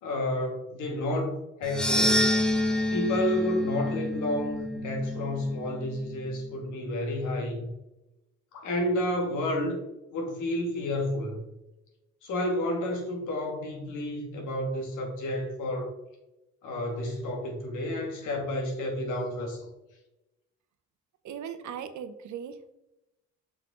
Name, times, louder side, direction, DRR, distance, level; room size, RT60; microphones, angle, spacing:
voice 1, 0.0-2.3 2.9-7.7 8.5-9.8 10.1-11.4 12.2-15.9 16.6-19.6, left 1 dB, 90° left, 1 dB, 2.4 m, -30 dB
sound 1, 1.6-6.0, left 1 dB, 5° left, 1.1 m, -28 dB
voice 2, 21.2-22.7, right 8 dB, 70° right, 9 dB, 1.0 m, -38 dB
6.4 x 5.8 x 3.8 m, 0.93 s
cardioid pair, 90°, 30 cm